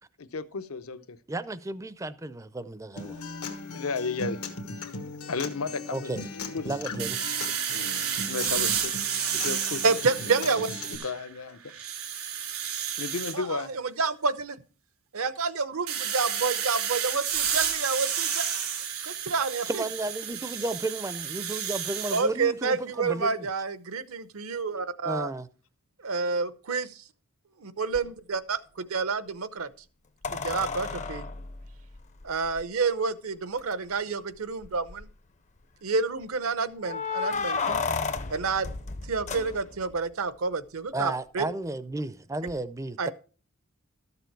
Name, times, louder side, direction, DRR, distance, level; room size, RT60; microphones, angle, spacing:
voice 1, 0.2-1.2 3.7-4.4 5.3-6.1 6.5-6.7 7.7-8.9 9.3-10.0 11.0-11.6 13.0-13.7, left 4 dB, 70° left, 0.7 m, -33 dB
voice 2, 1.3-3.2 5.9-6.2 6.6-7.2 19.7-23.5 25.0-25.5 40.9-43.1, right 2 dB, 15° right, 0.5 m, -33 dB
Acoustic guitar, 3.0-10.9, left 3 dB, 85° left, 1.4 m, -38 dB
sound 1, 7.0-11.3 11.7-13.4 15.9-22.2, right 8 dB, 85° right, 2.9 m, -31 dB
voice 3, 9.8-10.7 13.3-14.6 15.1-18.5 19.0-19.8 22.1-25.3 26.0-27.0 27.6-28.6 28.9-29.7 30.3-31.3 32.2-35.1 35.8-37.8 38.3-38.7 39.1-41.5 43.0-43.1, right 4 dB, 70° right, 0.7 m, -29 dB
sound 2, 27.9-28.0 30.2-32.6 33.6-33.7 34.0-34.1 34.6-35.1 36.8-40.0 42.5-42.6, left 4 dB, 35° left, 0.6 m, -32 dB
13.0 x 6.9 x 4.6 m
head